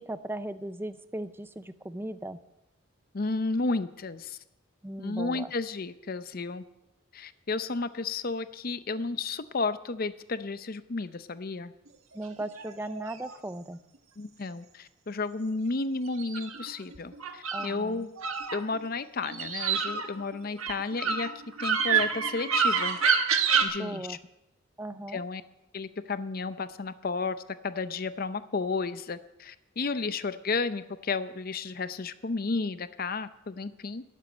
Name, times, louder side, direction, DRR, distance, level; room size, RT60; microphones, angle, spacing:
voice 1, 0.0-2.4 4.8-5.5 12.1-13.8 17.5-18.1 23.8-24.2 24.8-25.2, right 1 dB, 10° right, 12 dB, 0.5 m, -37 dB
voice 2, 3.1-4.4 5.0-6.6 7.1-11.7 14.2-18.1 18.5-21.3 21.6-23.0 23.6-24.2 25.1-25.4 25.7-27.4 27.6-34.0, left 3 dB, 45° left, 13 dB, 0.6 m, -32 dB
sound 1, 12.4-13.3 16.1-17.7 18.2-18.9 19.2-23.6, right 6 dB, 90° right, 1.4 m, -27 dB
12.5 x 8.1 x 9.3 m, 0.92 s
head